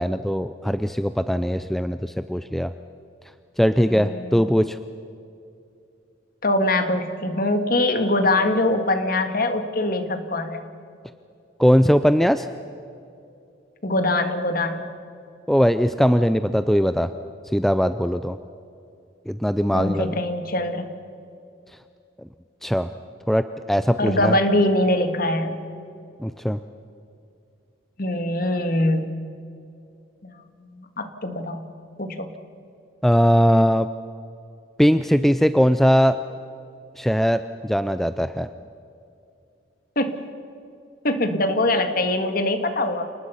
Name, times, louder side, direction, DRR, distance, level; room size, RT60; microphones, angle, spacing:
voice 1, 0.0-2.7 3.6-4.8 11.6-12.5 15.5-17.1 17.5-18.4 19.3-20.2 22.6-22.9 23.3-23.4 23.7-24.4 26.2-26.6 33.0-33.9 34.8-36.2 37.0-38.5, equal, ahead, 11 dB, 0.4 m, -20 dB
voice 2, 3.8-4.5 6.4-10.6 13.8-14.9 19.7-20.9 24.0-25.6 28.0-29.1 30.2-30.3 30.6-31.7 32.0-32.3 40.0-40.3 41.0-43.1, left 1 dB, 45° left, 8 dB, 1.8 m, -23 dB
28.5 x 19.5 x 5.7 m, 2.6 s
head